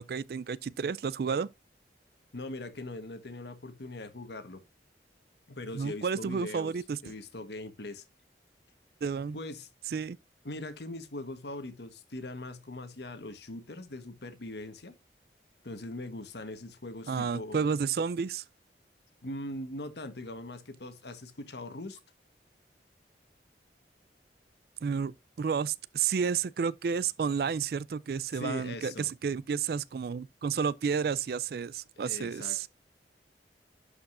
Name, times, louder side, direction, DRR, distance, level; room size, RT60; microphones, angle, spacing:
voice 1, 0.0-1.5 5.7-7.0 9.0-9.4 9.9-10.2 17.1-18.4 24.8-32.7, right 6 dB, 60° right, 0.3 m, -31 dB
voice 2, 2.3-4.6 5.5-6.7 7.0-8.0 9.3-9.7 10.4-14.9 15.6-17.6 19.2-22.0 28.3-29.1 32.0-32.7, left 2 dB, 70° left, 1.3 m, -41 dB
11.5 x 4.9 x 2.5 m
head